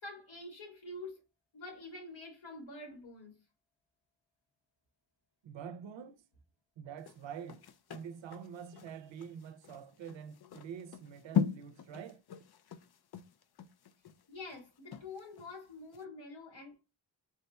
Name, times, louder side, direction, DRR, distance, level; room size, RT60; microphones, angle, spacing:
voice 1, 0.0-1.2 1.5-3.4 14.3-16.8, left 2 dB, 85° left, 2.2 m, -47 dB
voice 2, 5.4-6.2 6.8-7.6 7.9-12.2, right 7 dB, 80° right, 0.6 m, -46 dB
sound 1, 7.0-15.5 15.9-16.0, left 8 dB, 60° left, 0.5 m, -39 dB
3.9 x 2.2 x 4.1 m
wide cardioid pair, 105°, 44 cm